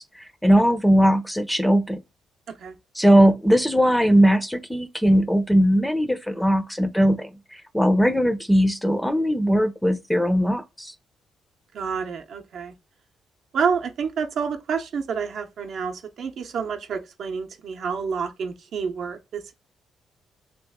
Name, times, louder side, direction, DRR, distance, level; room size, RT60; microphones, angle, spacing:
voice 1, 0.0-2.0 3.0-10.9, equal, 5° left, 0.6 m, -19 dB
voice 2, 11.7-12.7 13.5-19.5, right 6 dB, 65° right, 0.7 m, -28 dB
3.1 x 3.0 x 3.5 m
cardioid pair, 90°, 0 cm